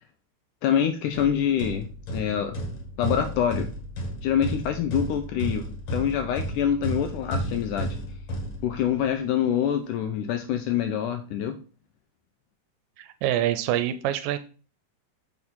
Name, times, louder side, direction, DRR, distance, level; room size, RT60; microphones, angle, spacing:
voice 1, 0.6-2.6 3.0-3.7 4.2-8.0 8.6-11.6, left 9 dB, 85° left, 6 dB, 1.9 m, -26 dB
sound 1, 1.1-9.1, right 1 dB, 55° left, 1.8 m, -33 dB
voice 2, 13.0-14.4, right 12 dB, 80° right, 11 dB, 2.1 m, -26 dB
6.5 x 5.6 x 4.2 m, 0.37 s
omnidirectional pair, 4.2 m